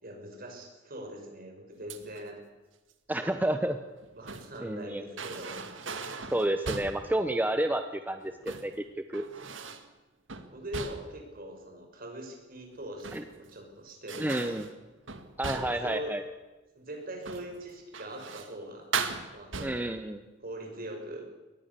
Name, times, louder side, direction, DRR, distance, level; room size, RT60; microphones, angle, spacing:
voice 1, 0.0-2.4 3.2-3.6 4.2-5.6 10.5-14.6 15.4-16.1 16.7-18.9 19.3-19.9 20.4-21.2, right 1 dB, 50° right, 3 dB, 5.8 m, -42 dB
sound 1, 1.9-2.3 3.9-4.6 5.2-7.1 8.2-8.8 9.1-9.9 10.3-11.3 12.8-13.5 14.1-15.9 17.2-17.6 17.9-18.6 18.9-20.0, right 5 dB, 85° right, 1.9 m, -38 dB
voice 2, 3.1-3.8 4.6-5.0 6.3-9.3 13.1-13.2 14.2-14.7 15.4-16.2 19.6-20.2, right 1 dB, 10° right, 8 dB, 0.9 m, -30 dB
23.0 x 19.5 x 6.9 m, 1.2 s
head